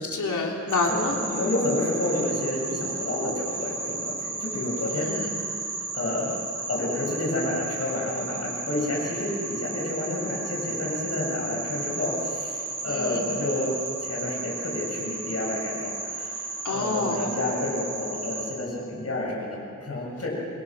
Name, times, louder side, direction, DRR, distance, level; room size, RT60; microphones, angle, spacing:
voice 1, 0.0-1.2 4.9-5.3 12.8-13.2 16.6-17.2, left 3 dB, 80° left, 0 dB, 3.2 m, -28 dB
sound 1, 0.7-18.5, right 3 dB, 80° right, 5.4 m, -34 dB
voice 2, 1.3-5.4 5.9-6.4 6.7-13.7 14.0-20.3, left 2 dB, 55° left, -3 dB, 6.9 m, -30 dB
27.5 x 21.5 x 6.2 m, 2.6 s
wide cardioid pair, 115°, 30 cm